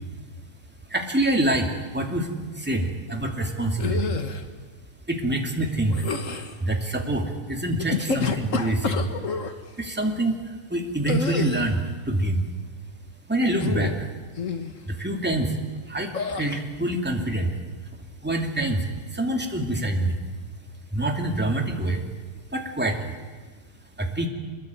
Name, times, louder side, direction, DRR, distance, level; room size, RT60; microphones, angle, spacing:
voice 1, 0.9-4.2 5.1-6.0 6.3-9.1 9.8-12.4 13.3-14.1 14.8-15.6 15.9-17.6 18.2-20.2 20.9-22.0 22.5-23.2 24.0-24.3, right 1 dB, 5° right, 2 dB, 1.9 m, -26 dB
sound 1, 3.8-4.4 5.9-6.6 7.8-9.5 11.1-11.8 13.5-14.0 14.4-14.7 16.1-16.6, left 5 dB, 65° left, 0.7 m, -29 dB
25.5 x 22.0 x 9.3 m, 1.4 s
omnidirectional pair, 3.9 m